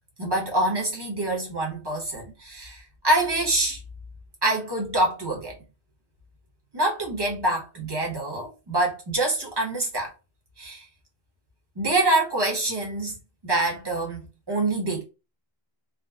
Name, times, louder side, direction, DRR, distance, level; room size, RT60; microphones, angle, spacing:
voice 1, 0.2-2.7 3.0-3.8 4.4-5.6 6.7-10.1 10.6-10.9 11.8-13.1 13.4-15.0, right 2 dB, 25° right, 0.9 m, -25 dB
3.6 x 2.1 x 2.3 m
omnidirectional pair, 1.1 m